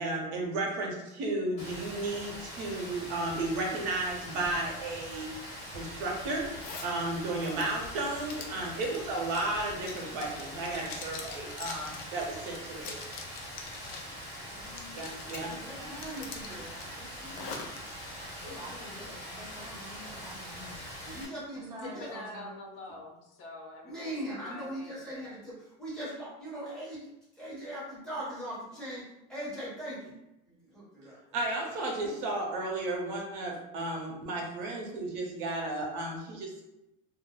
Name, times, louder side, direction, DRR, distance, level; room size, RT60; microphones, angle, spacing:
voice 1, 0.0-5.3 5.7-6.5 6.8-13.0 14.9-15.5 15.8-15.9 31.3-36.6, right 2 dB, 65° right, -1 dB, 0.7 m, -33 dB
Rain, 1.6-21.3, equal, 35° left, 1.2 m, -43 dB
Zipper (clothing), 6.6-6.9 7.4-14.1 14.5-15.5 15.9-17.8, left 5 dB, 50° left, 0.4 m, -44 dB
voice 2, 8.5-8.9 14.4-15.0 15.3-17.6 21.0-22.1 23.8-27.1 27.3-30.2 30.4-31.2, right 1 dB, 5° left, -10 dB, 1.1 m, -41 dB
voice 3, 18.4-20.8 21.5-22.5, equal, 20° right, -6 dB, 0.7 m, -46 dB
voice 4, 21.8-25.4, left 2 dB, 70° left, -1 dB, 0.8 m, -46 dB
2.2 x 2.0 x 3.0 m, 0.88 s
cardioid pair, 160°, 19 cm